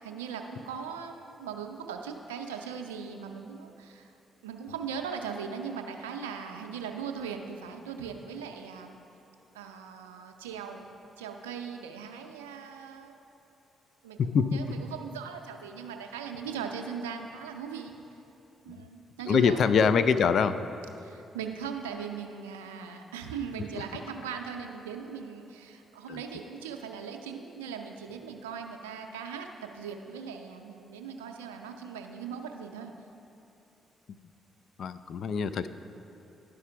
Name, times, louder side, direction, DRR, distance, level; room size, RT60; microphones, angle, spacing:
voice 1, 0.0-4.1 4.4-9.0 9.5-10.9 11.2-13.1 14.0-14.2 14.4-17.9 18.6-19.6 21.0-32.9, right 6 dB, 85° right, 4 dB, 0.5 m, -39 dB
voice 2, 19.3-20.6 26.1-26.2 34.8-35.7, left 6 dB, 55° left, 13 dB, 0.3 m, -24 dB
11.0 x 4.9 x 5.7 m, 2.8 s
hypercardioid pair, 40°, 0 cm